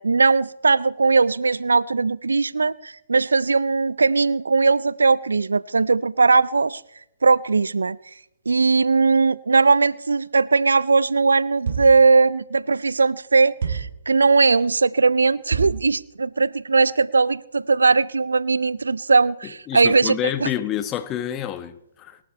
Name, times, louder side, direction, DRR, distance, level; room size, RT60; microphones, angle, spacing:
voice 1, 0.0-6.8 7.2-8.0 8.5-20.2 20.4-20.5, right 4 dB, 75° right, 0.5 m, -19 dB
sound 1, 11.7-12.1 13.6-14.0 15.5-15.9, right 6 dB, 55° right, 2.8 m, -27 dB
voice 2, 19.4-22.2, left 11 dB, 20° left, 1.2 m, -28 dB
23.0 x 11.5 x 4.3 m
figure-of-eight pair, 125°, 0 cm